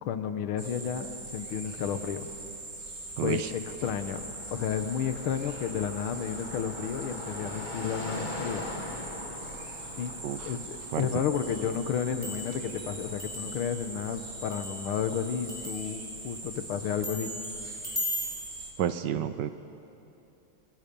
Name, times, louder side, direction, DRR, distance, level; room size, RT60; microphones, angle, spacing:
voice 1, 0.0-2.3 3.2-8.7 10.0-10.1 10.4-17.3, left 8 dB, 85° left, 9 dB, 1.9 m, -32 dB
sound 1, 0.6-18.7, right 2 dB, 40° right, 2.6 m, -42 dB
voice 2, 3.2-3.5 10.2-10.5 10.9-11.1 18.8-19.5, right 10 dB, 70° right, 11 dB, 1.2 m, -30 dB
Car passing by, 3.9-15.0, left 2 dB, 25° left, 1.7 m, -43 dB
sound 2, 11.3-11.6 11.9-15.2 15.5-16.2 17.0-18.4, left 1 dB, 5° right, 3.9 m, -38 dB
27.0 x 19.5 x 5.4 m, 2.9 s
omnidirectional pair, 2.3 m